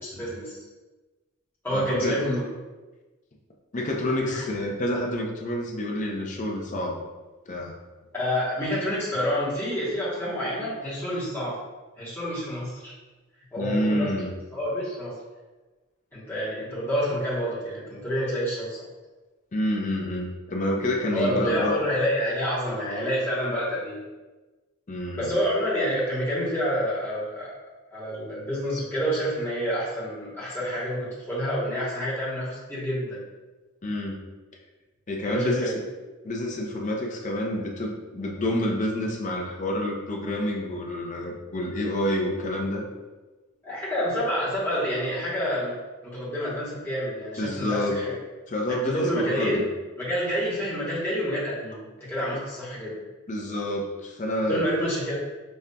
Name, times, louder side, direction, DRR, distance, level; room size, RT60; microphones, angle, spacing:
voice 1, 0.0-0.5 1.6-2.4 4.3-4.4 8.1-11.6 12.0-12.9 13.5-14.1 14.5-15.2 16.1-18.8 21.1-24.0 25.2-27.5 27.9-33.2 35.2-35.7 43.6-45.7 46.0-48.2 48.9-49.7 50.0-53.0 54.5-55.1, equal, 10° left, -9 dB, 1.0 m, -28 dB
voice 2, 1.7-2.2 3.7-7.0 7.5-7.8 13.6-14.3 19.5-21.8 24.9-25.3 33.8-34.2 35.1-35.8 36.2-42.8 47.4-48.0 48.5-49.6 53.3-54.7, left 1 dB, 35° left, 0 dB, 0.5 m, -28 dB
5.2 x 2.3 x 2.2 m, 1.2 s
head